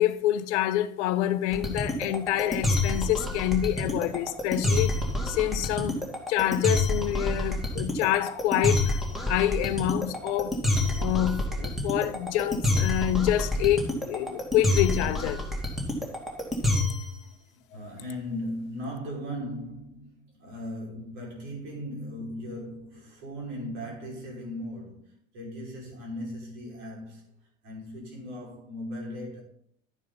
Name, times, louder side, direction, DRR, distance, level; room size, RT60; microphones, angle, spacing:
voice 1, 0.0-5.0 5.3-6.0 6.3-10.5 11.0-15.5, left 13 dB, 55° left, 0.8 m, -27 dB
sound 1, 1.5-17.2, left 2 dB, ahead, 2.6 m, -27 dB
voice 2, 17.5-29.4, equal, 55° right, 5.4 m, -38 dB
11.5 x 9.4 x 4.0 m
figure-of-eight pair, 80°, 41 cm